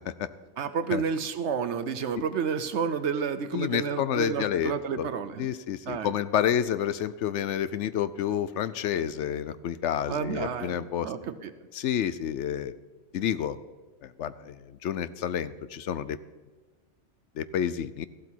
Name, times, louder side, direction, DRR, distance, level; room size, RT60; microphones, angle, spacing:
voice 1, 0.6-5.5 5.9-6.1 10.1-10.8 11.0-11.5, right 6 dB, 75° right, 11 dB, 1.0 m, -30 dB
voice 2, 3.5-5.1 5.4-11.1 11.7-12.7 13.1-13.6 14.0-16.2 17.4-18.1, left 9 dB, 80° left, 15 dB, 0.9 m, -29 dB
14.5 x 12.0 x 4.5 m, 1.3 s
omnidirectional pair, 1.2 m